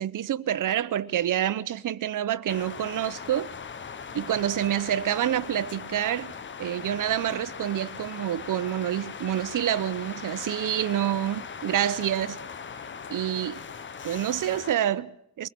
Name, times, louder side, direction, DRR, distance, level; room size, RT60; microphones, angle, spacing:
voice 1, 0.0-3.5 4.1-12.4 13.1-13.6 14.0-15.5, right 11 dB, 55° right, 0.9 m, -27 dB
sound 1, 2.5-14.7, left 6 dB, 30° left, 0.8 m, -40 dB
24.0 x 20.5 x 7.6 m
cardioid pair, 140°, 38 cm